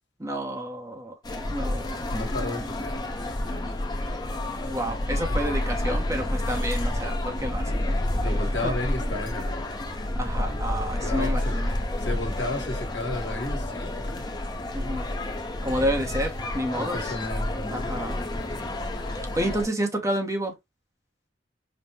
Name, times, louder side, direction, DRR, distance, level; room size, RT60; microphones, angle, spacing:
voice 1, 0.2-1.1 1.5-2.1 4.7-8.7 10.1-11.8 14.7-15.1 15.6-17.0 17.7-18.2 19.3-20.5, equal, 20° right, 0.8 m, -30 dB
sound 1, 1.2-19.7, left 1 dB, 25° left, 0.7 m, -29 dB
voice 2, 2.1-3.0 3.4-3.8 8.2-9.6 11.0-11.5 12.0-14.2 16.7-17.9 18.2-18.7 19.1-19.2, left 2 dB, 75° left, 1.4 m, -33 dB
5.2 x 2.1 x 2.8 m
head